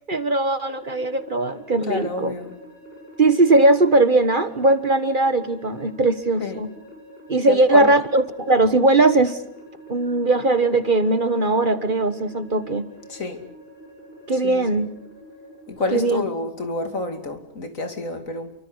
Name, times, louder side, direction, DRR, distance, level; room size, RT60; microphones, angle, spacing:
voice 1, 0.1-2.3 3.2-6.7 7.3-9.4 9.9-12.8 14.3-14.9 15.9-16.2, right 2 dB, 35° right, 1.5 m, -19 dB
sound 1, 0.8-15.8, equal, 40° left, 7.9 m, -45 dB
voice 2, 1.8-2.6 6.4-6.6 7.5-7.9 13.1-13.4 14.4-14.8 15.7-18.5, left 3 dB, 65° left, 3.2 m, -28 dB
29.0 x 24.5 x 8.0 m
omnidirectional pair, 1.5 m